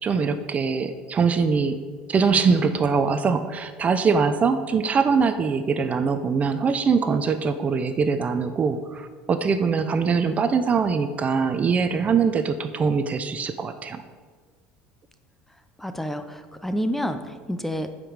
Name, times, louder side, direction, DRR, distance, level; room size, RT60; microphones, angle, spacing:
voice 1, 0.0-1.8 2.1-14.0, right 5 dB, 35° right, 10 dB, 0.6 m, -22 dB
voice 2, 15.8-17.9, equal, 5° left, 8 dB, 0.7 m, -29 dB
9.0 x 5.2 x 6.5 m, 1.5 s
supercardioid pair, 100°, 4 cm